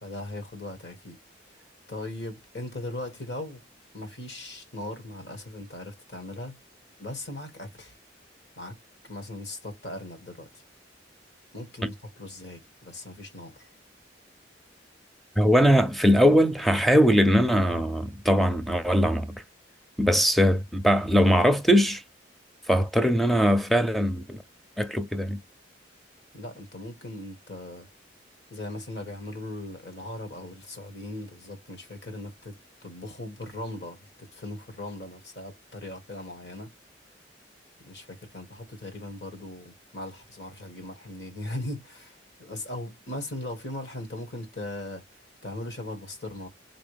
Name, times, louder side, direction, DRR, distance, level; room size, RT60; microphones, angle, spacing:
voice 1, 0.0-1.2 1.5-1.6 1.9-3.6 3.9-6.6 7.0-7.9 8.6-8.8 9.1-10.6 11.5-13.7 26.3-27.9 28.5-36.7 37.8-45.0 45.4-46.5, left 1 dB, 65° left, 2.0 m, -39 dB
voice 2, 15.4-19.3 20.0-22.0 22.7-24.4 24.8-25.4, equal, ahead, 0.5 m, -21 dB
4.1 x 3.9 x 3.3 m
head